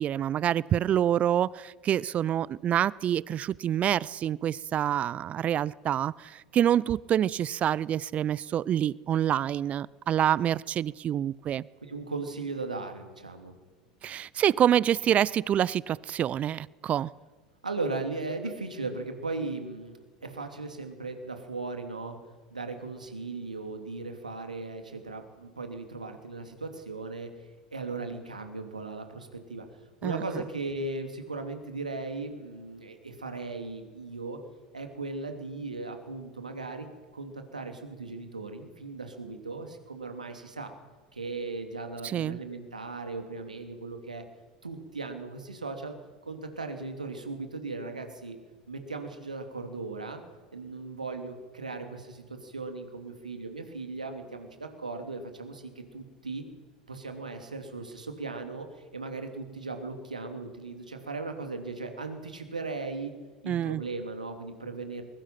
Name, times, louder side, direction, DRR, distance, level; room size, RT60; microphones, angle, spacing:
voice 1, 0.0-11.7 14.0-17.1 30.0-30.2 42.0-42.4 63.5-63.8, right 10 dB, 35° right, 24 dB, 0.5 m, -27 dB
voice 2, 11.8-13.5 17.6-22.2 22.5-27.3 27.7-29.6 30.0-34.4 34.7-36.9 37.1-40.7 41.1-44.2 44.6-45.9 46.3-48.4 48.7-50.2 50.5-56.5 56.9-58.7 58.9-63.1 63.4-65.0, right 3 dB, 85° right, 6 dB, 2.8 m, -37 dB
22.5 x 21.5 x 5.9 m, 1.4 s
figure-of-eight pair, 80°, 4 cm